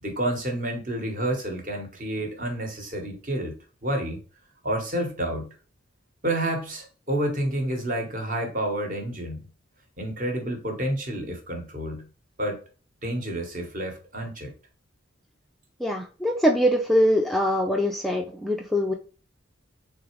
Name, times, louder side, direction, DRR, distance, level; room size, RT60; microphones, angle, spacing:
voice 1, 0.0-3.5 3.8-4.2 4.6-5.5 6.2-9.4 10.0-12.1 12.4-12.6 13.0-14.5, right 1 dB, 40° right, 1.1 m, -29 dB
voice 2, 15.8-18.9, equal, ahead, 0.3 m, -23 dB
3.7 x 3.3 x 3.1 m
head